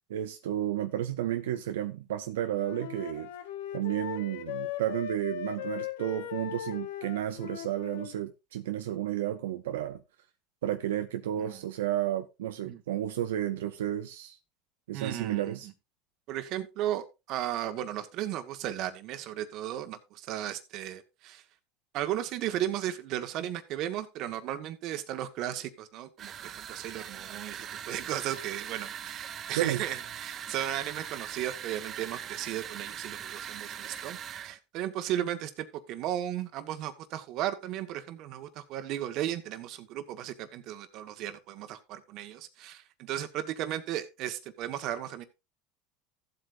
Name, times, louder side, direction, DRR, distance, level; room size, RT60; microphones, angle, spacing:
voice 1, 0.1-3.3 3.7-10.0 10.6-14.4 14.9-15.7 29.6-29.8, right 12 dB, 90° right, 0.6 m, -32 dB
Wind instrument woodwind instrument, 2.5-8.2, left 11 dB, 85° left, 1.0 m, -38 dB
voice 2, 14.9-15.6 16.3-21.4 21.9-45.2, right 12 dB, 55° right, 1.5 m, -35 dB
sound 1, 26.2-34.5, right 9 dB, 40° right, 0.8 m, -41 dB
14.5 x 8.1 x 2.6 m
supercardioid pair, 110°, 0 cm